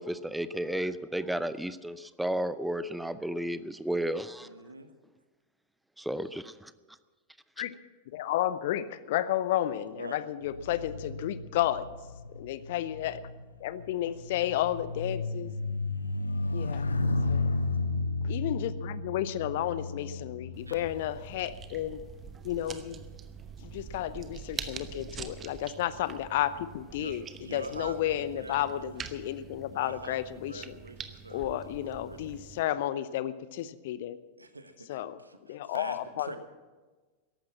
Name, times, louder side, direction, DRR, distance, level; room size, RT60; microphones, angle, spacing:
voice 1, 0.0-4.5 6.0-6.7, right 1 dB, 5° right, 14 dB, 0.6 m, -33 dB
voice 2, 4.4-4.9 9.9-10.2 20.7-20.8 26.9-28.9 29.7-32.4 34.4-36.4, right 2 dB, 80° right, 9 dB, 1.3 m, -45 dB
voice 3, 8.1-11.9 12.3-13.2 13.6-15.5 16.5-16.9 17.3-17.5 18.2-22.0 22.4-23.1 23.6-27.2 27.5-30.8 31.3-34.2 34.9-35.2 35.5-36.4, left 12 dB, 55° left, 16 dB, 0.7 m, -32 dB
sound 1, 10.4-22.1 22.8-23.1, left 3 dB, 75° left, 0.9 m, -33 dB
sound 2, 20.5-32.6, right 7 dB, 25° right, 1.0 m, -45 dB
14.0 x 11.5 x 7.4 m, 1.3 s
figure-of-eight pair, 90°, 0 cm